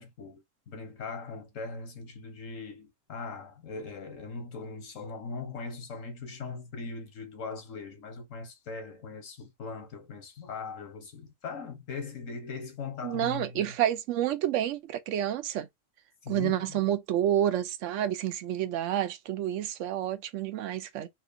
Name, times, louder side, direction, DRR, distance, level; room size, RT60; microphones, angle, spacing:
voice 1, 0.0-13.7 16.2-16.8, left 4 dB, 75° left, 1.4 m, -40 dB
voice 2, 13.0-15.7 16.3-21.1, right 11 dB, 75° right, 0.9 m, -29 dB
4.3 x 2.4 x 2.6 m
omnidirectional pair, 1.3 m